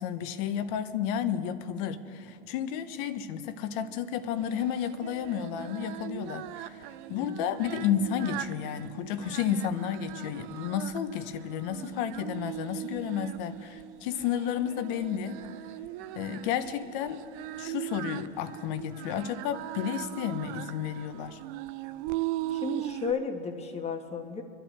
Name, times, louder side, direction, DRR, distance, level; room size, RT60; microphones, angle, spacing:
voice 1, 0.0-6.8 7.1-15.4 16.1-17.2 17.6-21.4, left 8 dB, 55° left, 10 dB, 1.2 m, -32 dB
Singing, 4.4-23.1, right 14 dB, 55° right, 0.7 m, -39 dB
voice 2, 7.1-7.4 22.5-24.4, left 5 dB, 20° left, 4 dB, 1.6 m, -34 dB
25.5 x 12.5 x 3.4 m, 2.8 s
supercardioid pair, 125°, 32 cm